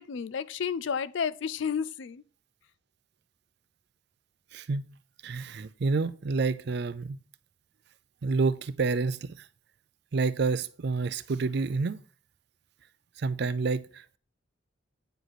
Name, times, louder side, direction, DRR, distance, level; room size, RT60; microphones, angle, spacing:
voice 1, 0.0-2.2, left 6 dB, 65° left, 0.4 m, -31 dB
voice 2, 4.5-5.0 5.2-7.2 8.2-9.5 10.1-12.0 13.2-14.2, right 4 dB, 55° right, 0.4 m, -29 dB
9.1 x 4.9 x 4.1 m
head